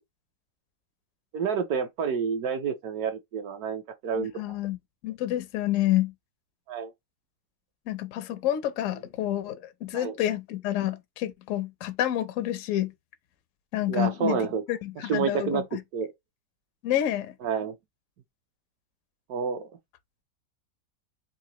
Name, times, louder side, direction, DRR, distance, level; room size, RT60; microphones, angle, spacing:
voice 1, 1.3-4.6 6.7-6.9 9.9-10.1 13.9-14.6 15.1-15.6 15.9-16.1 17.4-17.7 19.3-19.7, right 6 dB, 70° right, 1.0 m, -29 dB
voice 2, 4.1-4.8 5.0-6.1 7.9-12.9 13.7-15.8 16.8-17.3, left 13 dB, 75° left, 0.7 m, -29 dB
3.8 x 2.7 x 2.9 m
omnidirectional pair, 1.9 m